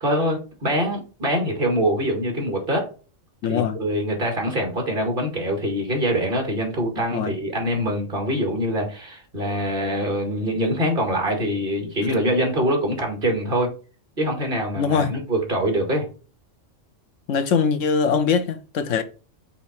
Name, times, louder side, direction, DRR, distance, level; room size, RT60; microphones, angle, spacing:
voice 1, 0.0-2.9 3.5-13.7 14.2-16.1, equal, 45° right, 2.2 m, -24 dB
voice 2, 3.4-3.8 7.1-7.4 14.8-15.1 17.3-19.0, left 6 dB, 75° left, 1.1 m, -22 dB
5.6 x 4.2 x 4.3 m
omnidirectional pair, 1.3 m